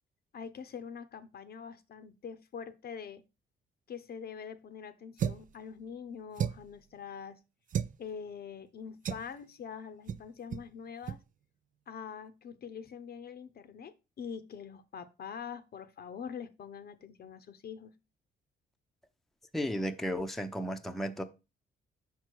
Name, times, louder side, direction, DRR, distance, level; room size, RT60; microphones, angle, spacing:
voice 1, 0.3-3.2 3.9-7.4 8.0-11.2 11.9-17.9, left 7 dB, 50° left, 0.7 m, -44 dB
sound 1, 5.2-5.5 6.3-6.8 7.7-8.0 9.0-9.3 10.1-10.2 10.5-10.7 11.0-11.2, right 8 dB, 40° right, 0.4 m, -33 dB
voice 2, 19.5-21.2, equal, ahead, 0.6 m, -34 dB
5.7 x 4.6 x 4.6 m
cardioid pair, 90°, 20 cm